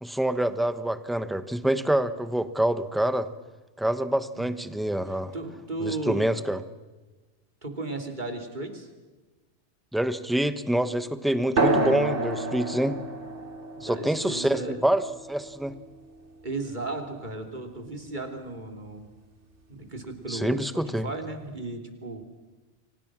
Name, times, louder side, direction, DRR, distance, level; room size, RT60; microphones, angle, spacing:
voice 1, 0.0-3.3 3.8-5.3 5.8-6.6 9.9-13.0 13.8-15.7 20.3-21.1, right 1 dB, ahead, 11 dB, 1.0 m, -26 dB
voice 2, 5.1-6.3 7.6-8.9 13.7-14.8 16.4-19.1 19.7-22.2, right 2 dB, 40° right, 4 dB, 3.2 m, -35 dB
sound 1, 11.6-16.6, right 2 dB, 75° right, 2.7 m, -29 dB
30.0 x 24.5 x 6.2 m, 1.2 s
omnidirectional pair, 1.2 m